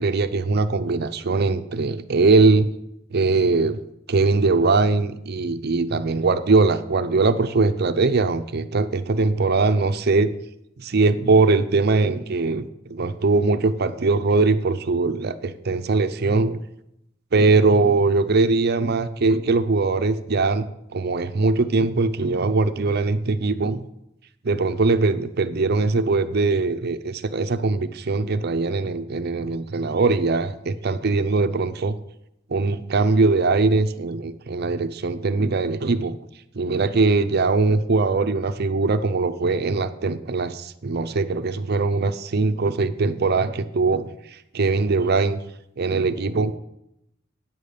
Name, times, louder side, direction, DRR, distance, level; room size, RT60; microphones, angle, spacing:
voice 1, 0.0-2.7 3.1-3.8 4.1-10.3 10.8-16.6 17.3-20.7 20.9-23.8 24.4-32.0 32.5-36.2 36.6-44.1 44.5-45.4 45.8-46.6, right 3 dB, 55° right, 10 dB, 0.6 m, -21 dB
9.3 x 7.2 x 6.6 m, 0.81 s
head